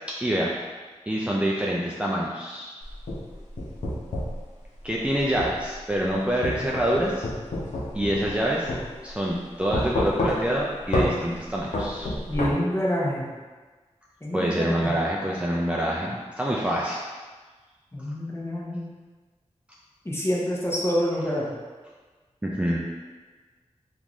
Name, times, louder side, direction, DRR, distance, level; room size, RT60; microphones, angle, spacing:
voice 1, 0.2-0.5 1.1-2.7 4.8-7.3 7.9-8.7 9.0-12.1 14.3-17.0 22.4-22.8, right 1 dB, 10° right, -4 dB, 0.4 m, -26 dB
sound 1, 2.8-4.4 5.4-5.6 6.4-8.4 8.7-8.8 9.7-10.6 10.9-11.1 11.7-12.5, left 1 dB, 80° left, 0.7 m, -27 dB
voice 2, 12.3-13.3 14.2-15.0 17.9-18.9 20.0-21.5, equal, 20° left, -4 dB, 0.8 m, -27 dB
3.6 x 2.5 x 3.0 m, 1.4 s
wide cardioid pair, 65°, 12 cm